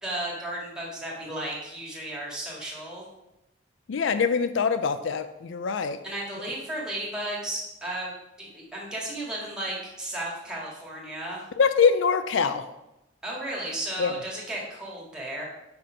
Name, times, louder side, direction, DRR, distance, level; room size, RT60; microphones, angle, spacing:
voice 1, 0.0-3.0 6.0-11.4 13.2-15.4, right 1 dB, 5° right, -4 dB, 2.0 m, -34 dB
voice 2, 3.9-6.0 11.6-12.7 14.0-14.1, left 5 dB, 70° left, 11 dB, 0.4 m, -24 dB
5.9 x 5.9 x 5.1 m, 0.92 s
head